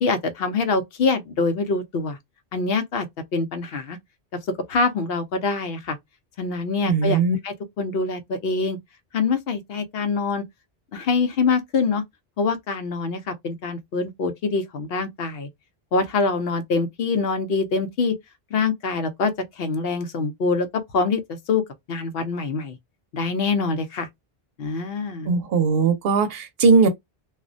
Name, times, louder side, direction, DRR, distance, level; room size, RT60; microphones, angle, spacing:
voice 1, 0.0-2.2 2.5-3.1 3.3-4.0 4.7-6.0 6.4-8.8 9.1-10.4 10.9-12.0 12.4-15.5 15.9-18.1 18.5-20.7 20.9-21.2 21.5-21.6 21.9-22.8 23.1-24.1 24.6-25.3, left 4 dB, 70° left, 0.8 m, -24 dB
voice 2, 6.8-7.4 25.3-26.9, right 4 dB, 70° right, 0.8 m, -19 dB
2.4 x 2.1 x 2.4 m
omnidirectional pair, 1.0 m